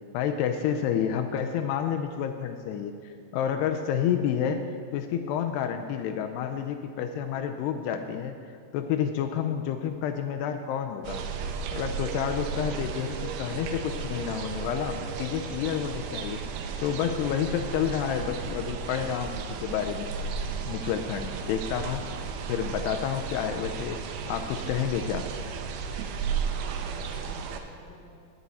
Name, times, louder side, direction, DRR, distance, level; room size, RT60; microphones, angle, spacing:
voice 1, 0.1-4.6 4.9-8.3 8.7-11.2 11.7-16.4 16.8-19.3 19.6-20.1 20.7-22.1 22.5-24.0 24.3-25.3, left 8 dB, 85° left, 6 dB, 2.4 m, -29 dB
sound 1, 11.0-27.6, right 6 dB, 80° right, 2.5 m, -34 dB
voice 2, 26.1-28.2, left 1 dB, 50° right, -7 dB, 3.6 m, -51 dB
18.0 x 9.2 x 4.1 m, 2.2 s
omnidirectional pair, 5.3 m